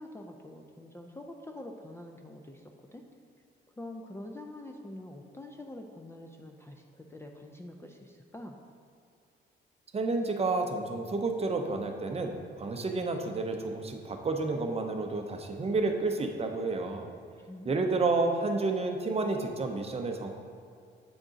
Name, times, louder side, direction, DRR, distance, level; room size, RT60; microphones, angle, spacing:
voice 1, 0.0-3.0 3.8-8.6 17.4-17.8, left 1 dB, 15° left, 2 dB, 0.4 m, -45 dB
voice 2, 9.9-17.1 17.6-20.3, right 3 dB, 30° right, 4 dB, 0.6 m, -30 dB
7.9 x 3.6 x 3.9 m, 2.4 s
cardioid pair, 90°, 20 cm